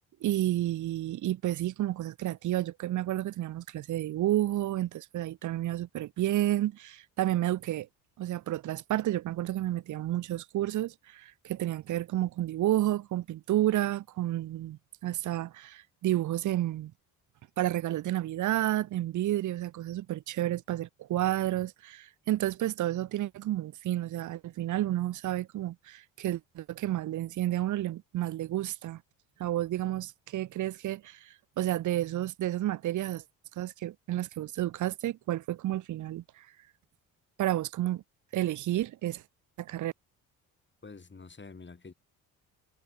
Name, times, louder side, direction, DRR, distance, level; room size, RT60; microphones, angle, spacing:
voice 1, 0.2-7.9 8.2-16.9 17.6-29.0 29.4-33.2 33.6-36.5 37.4-38.0 38.3-39.2 39.6-39.9, right 14 dB, 50° right, 0.6 m, -31 dB
voice 2, 40.8-41.9, left 4 dB, 25° left, 4.5 m, -47 dB
supercardioid pair, 60°, 40 cm